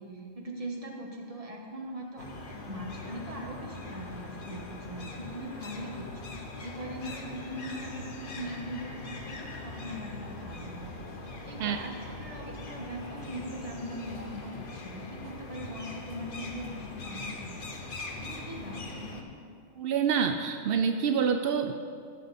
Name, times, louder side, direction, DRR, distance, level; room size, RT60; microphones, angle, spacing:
voice 1, 0.0-10.9 11.4-17.7 18.2-19.3, equal, 25° right, 0 dB, 1.3 m, -41 dB
sound 1, 2.2-19.2, left 2 dB, 40° left, 1.0 m, -41 dB
voice 2, 19.8-21.7, right 7 dB, 75° right, 6 dB, 0.5 m, -27 dB
16.0 x 6.6 x 4.1 m, 2.3 s
omnidirectional pair, 1.5 m